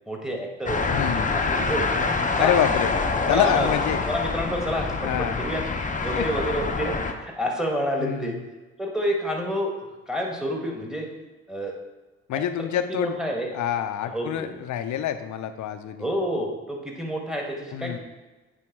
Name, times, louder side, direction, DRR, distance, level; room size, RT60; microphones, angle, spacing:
voice 1, 0.1-2.0 2.4-2.5 3.3-3.7 4.1-5.6 6.0-8.4 8.8-11.1 11.5-11.8 12.3-13.5 14.0-14.6 16.0-18.0, equal, ahead, 0 dB, 1.6 m, -29 dB
sound 1, 0.7-7.1, left 4 dB, 25° left, 0.8 m, -26 dB
voice 2, 0.9-1.4 2.4-2.9 3.3-4.0 5.0-5.4 6.2-6.3 8.0-8.4 12.3-13.2 13.5-16.1 17.7-18.0, left 10 dB, 60° left, 10 dB, 0.6 m, -27 dB
8.7 x 3.5 x 4.6 m, 1.2 s
hypercardioid pair, 45°, 33 cm